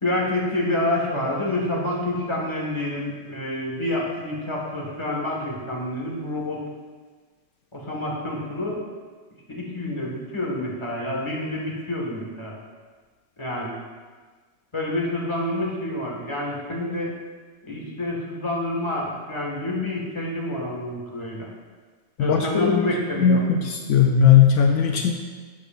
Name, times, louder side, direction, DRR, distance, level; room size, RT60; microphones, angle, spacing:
voice 1, 0.0-6.6 7.7-8.8 9.5-12.6 13.4-13.7 14.7-17.1 17.7-21.5 22.2-23.4, left 1 dB, 25° left, -2 dB, 1.7 m, -28 dB
voice 2, 22.2-22.9 23.2-25.1, left 7 dB, 75° left, 3 dB, 1.0 m, -18 dB
12.0 x 8.2 x 2.6 m, 1.4 s
omnidirectional pair, 1.3 m